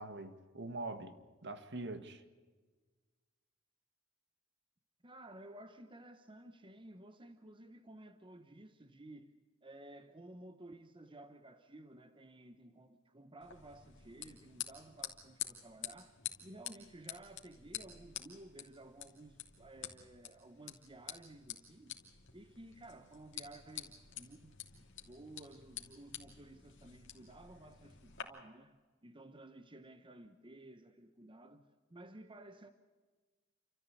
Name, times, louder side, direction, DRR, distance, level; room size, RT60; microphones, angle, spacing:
voice 1, 0.0-2.2, right 2 dB, 60° right, 1.8 m, -44 dB
voice 2, 5.0-9.4 9.6-22.0 22.3-32.7, right 1 dB, 25° right, 1.0 m, -55 dB
sound 1, 13.4-28.2, left 10 dB, 65° left, 2.9 m, -49 dB
29.5 x 14.0 x 8.3 m
head